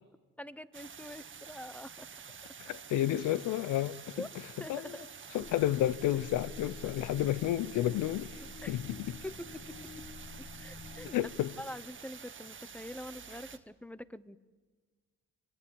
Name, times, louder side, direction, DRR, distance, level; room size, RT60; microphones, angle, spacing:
voice 1, 0.4-2.1 4.2-4.3 4.6-5.1 5.4-5.5 8.6-8.8 9.2-9.9 10.6-11.3 11.6-14.4, left 1 dB, 5° left, 1.0 m, -45 dB
sound 1, 0.7-13.6, right 6 dB, 40° right, 1.7 m, -49 dB
voice 2, 2.6-4.3 4.7-5.0 5.3-8.4 8.7-9.2 11.0-11.5, left 13 dB, 90° left, 0.8 m, -31 dB
sound 2, 5.4-11.2, left 4 dB, 50° left, 3.2 m, -48 dB
24.5 x 22.0 x 8.7 m
cardioid pair, 90°, 30 cm